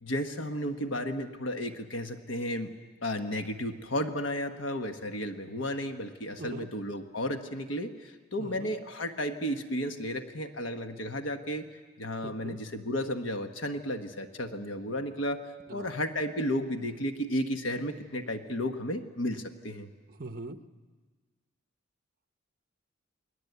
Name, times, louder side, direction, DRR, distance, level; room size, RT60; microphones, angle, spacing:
voice 1, 0.0-2.7 3.0-11.7 12.0-15.4 15.7-19.9, equal, 70° left, 6 dB, 1.4 m, -33 dB
voice 2, 8.4-8.7 12.4-12.6 15.7-15.9 20.1-20.6, right 2 dB, 50° right, 8 dB, 1.0 m, -41 dB
29.0 x 20.5 x 8.2 m, 1.4 s
head